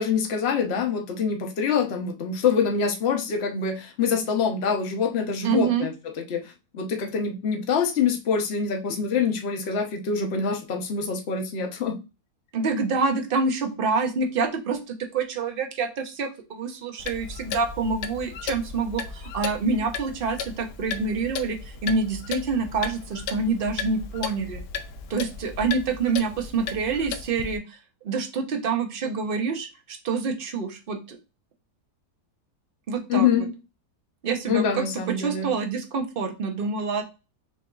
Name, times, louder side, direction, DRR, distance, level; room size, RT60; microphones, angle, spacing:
voice 1, 0.0-5.9 6.3-12.0 33.1-33.5 34.5-35.5, left 6 dB, 50° left, 3 dB, 0.9 m, -25 dB
voice 2, 5.4-5.9 12.5-24.6 25.1-27.8 28.0-31.2 32.9-33.4 34.2-34.8 35.2-37.0, right 4 dB, 45° right, 5 dB, 0.7 m, -27 dB
Clock, 17.0-27.6, left 6 dB, 90° left, 1.2 m, -35 dB
6.6 x 2.6 x 2.3 m, 0.29 s
omnidirectional pair, 1.7 m